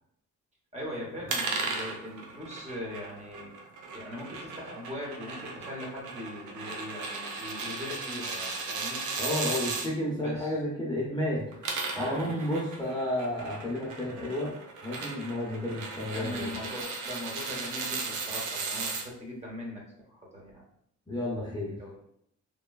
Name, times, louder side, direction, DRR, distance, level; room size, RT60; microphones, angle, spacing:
voice 1, 0.7-3.5 3.9-9.0 10.2-10.6 11.9-12.6 16.1-20.6 21.8-22.0, left 1 dB, 20° right, -3 dB, 1.0 m, -40 dB
sound 1, 1.3-9.9 11.4-19.0, right 4 dB, 75° right, 0.6 m, -36 dB
voice 2, 9.2-14.5 14.8-16.5 21.1-21.8, left 1 dB, 15° left, -5 dB, 0.7 m, -32 dB
3.0 x 2.2 x 2.3 m, 0.71 s
cardioid pair, 90°, 30 cm